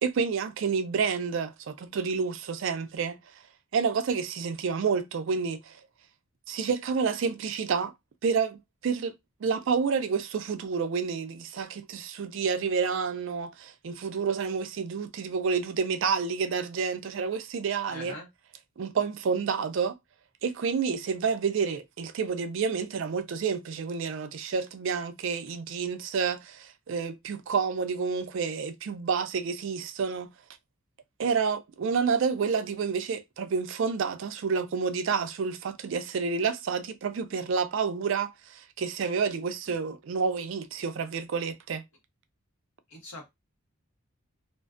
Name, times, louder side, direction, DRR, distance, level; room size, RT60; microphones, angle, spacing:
voice 1, 0.0-3.2 3.7-5.8 6.5-7.9 8.2-9.1 9.4-18.1 18.8-19.9 20.4-30.3 31.2-41.8, right 5 dB, 55° right, 0.3 m, -29 dB
voice 2, 17.9-18.3 39.7-39.8 42.9-43.2, left 2 dB, 75° left, 1.1 m, -43 dB
2.4 x 2.2 x 2.4 m
head